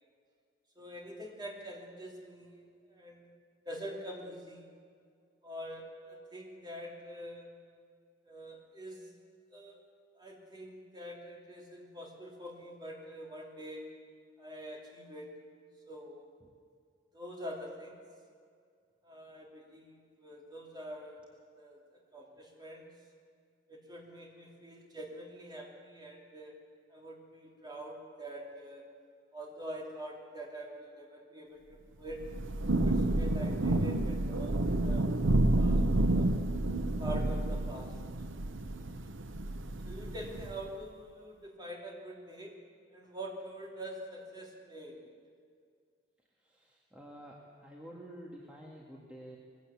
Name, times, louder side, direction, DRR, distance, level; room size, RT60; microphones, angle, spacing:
voice 1, 0.8-3.3 3.6-4.7 5.4-7.5 8.2-9.1 9.5-9.8 10.2-13.9 14.4-15.3 15.9-16.3 17.1-18.0 19.0-21.2 21.5-22.9 23.7-26.6 26.9-28.9 29.3-32.2 32.8-35.1 35.6-36.3 37.0-37.9 38.7-38.9 39.8-42.6 42.9-45.1, right 1 dB, 20° right, -1 dB, 3.1 m, -45 dB
Thunder / Rain, 32.1-40.7, right 1 dB, 80° right, 0.9 m, -30 dB
voice 2, 46.4-49.4, equal, 5° right, -3 dB, 1.8 m, -49 dB
21.0 x 16.0 x 8.4 m, 2.2 s
head